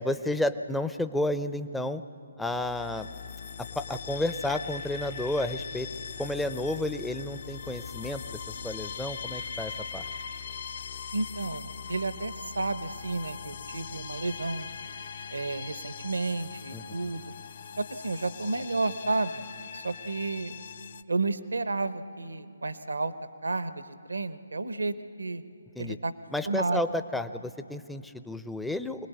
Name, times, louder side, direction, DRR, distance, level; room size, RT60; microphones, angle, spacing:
voice 1, 0.0-2.0 2.4-3.1 3.6-5.9 6.2-8.2 8.6-10.0 16.7-17.1 25.7-26.0 26.3-29.1, left 1 dB, 5° left, 10 dB, 0.6 m, -31 dB
sound 1, 2.4-21.0, left 6 dB, 50° left, 0.6 m, -40 dB
voice 2, 11.1-14.7 15.3-17.2 17.8-19.4 19.7-20.6 21.1-23.1 23.4-23.8 24.1-25.4 25.8-26.1 26.5-26.8, right 3 dB, 75° right, 13 dB, 0.9 m, -31 dB
25.5 x 19.5 x 8.2 m, 2.4 s
figure-of-eight pair, 140°, 0 cm